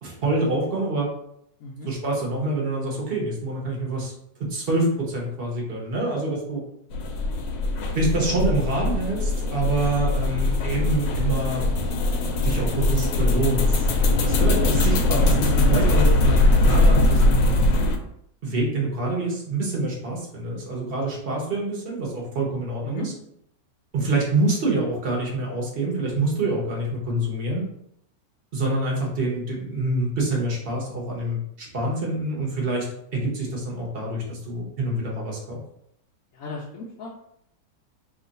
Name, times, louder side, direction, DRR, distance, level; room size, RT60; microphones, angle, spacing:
voice 1, 0.0-1.1 1.8-4.1 4.4-6.6 7.9-11.6 12.4-17.6 18.4-23.1 23.9-27.7 28.5-32.9 33.1-35.6, right 2 dB, 45° right, -2 dB, 0.8 m, -26 dB
sound 1, 6.9-18.0, left 2 dB, 85° left, 1.3 m, -21 dB
voice 2, 36.3-37.1, left 3 dB, 65° left, -3 dB, 0.9 m, -35 dB
3.0 x 2.4 x 3.9 m, 0.73 s
omnidirectional pair, 1.9 m